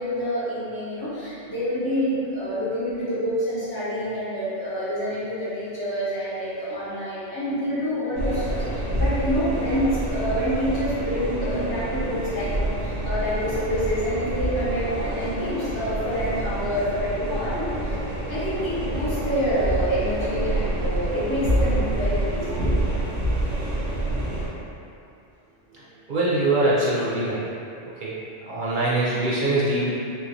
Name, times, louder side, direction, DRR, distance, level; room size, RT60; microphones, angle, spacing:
voice 1, 0.0-18.0 18.3-22.8, equal, 75° left, -13 dB, 1.7 m, -27 dB
sound 1, 8.1-24.5, right 1 dB, 80° right, 1.4 m, -27 dB
voice 2, 26.1-27.5 28.0-28.1 28.5-29.9, right 2 dB, 50° right, -8 dB, 0.7 m, -23 dB
5.7 x 2.6 x 2.8 m, 2.6 s
omnidirectional pair, 1.2 m